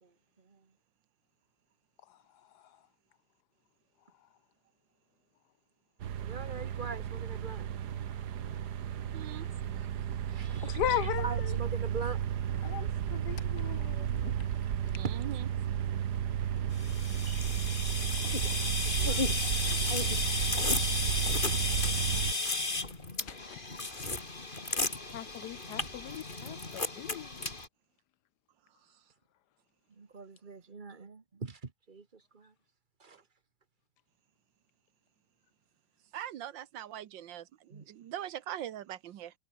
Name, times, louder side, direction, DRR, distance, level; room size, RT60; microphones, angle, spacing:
sound 1, 6.0-22.3, right 9 dB, 65° right, 1.6 m, -33 dB
voice 1, 6.2-7.7 8.5-8.6 9.5-9.6 10.3-12.2 15.0-15.1 17.3-17.4 17.9-18.3 18.6-19.5 19.8-20.0 23.7-23.9 25.7-25.8 29.9-32.5 33.0-33.2 37.7-37.9, right 4 dB, 30° right, 1.4 m, -43 dB
voice 2, 9.1-9.5 9.7-9.8 14.9-15.5 36.1-39.3, right 11 dB, 90° right, 1.7 m, -42 dB
voice 3, 10.6-11.6 12.6-14.3 21.7-21.8 23.2-23.6 24.7-24.8 25.1-27.3, left 13 dB, 75° left, 1.1 m, -37 dB
sound 2, 16.8-27.7, left 2 dB, 25° left, 2.9 m, -34 dB
omnidirectional pair, 2.0 m